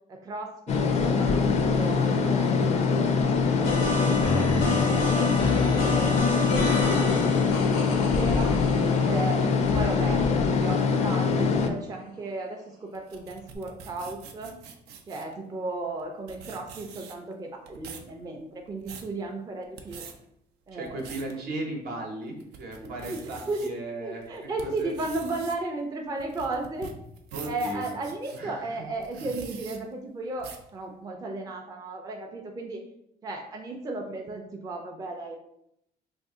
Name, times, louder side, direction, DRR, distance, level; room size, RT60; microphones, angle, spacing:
voice 1, 0.1-8.5 9.0-14.5 15.1-20.0 20.7-21.0 21.3-21.4 22.8-23.7 24.0-26.9 27.4-32.8 33.2-35.4, right 2 dB, 20° right, 1 dB, 0.4 m, -35 dB
sound 1, 0.7-11.7, left 5 dB, 40° left, 0.4 m, -23 dB
sound 2, 3.6-10.8, left 2 dB, 85° left, 0.7 m, -30 dB
sound 3, 12.9-15.3 16.0-16.1 16.3-17.3 17.7-18.1 18.6-19.1 19.6-20.1 20.7-21.3 21.8-21.9 22.4-23.7 24.2-28.4 29.0-29.8 30.4-30.7, right 6 dB, 85° right, 0.4 m, -44 dB
voice 2, 20.7-24.9 27.3-27.9 28.3-28.7, right 2 dB, 70° right, 1 dB, 0.9 m, -37 dB
2.6 x 2.4 x 3.6 m, 0.77 s
cardioid pair, 110°, 17 cm